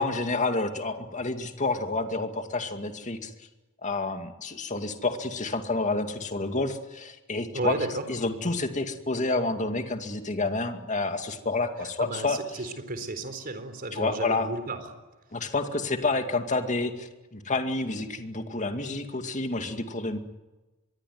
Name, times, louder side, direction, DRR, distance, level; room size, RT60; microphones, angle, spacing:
voice 1, 0.0-3.3 3.8-7.8 8.1-12.4 13.9-14.5 15.3-20.2, left 3 dB, 35° left, 6 dB, 2.3 m, -29 dB
voice 2, 7.5-8.0 11.8-14.8, right 2 dB, 45° right, 9 dB, 4.1 m, -33 dB
25.0 x 22.0 x 9.5 m, 1.1 s
head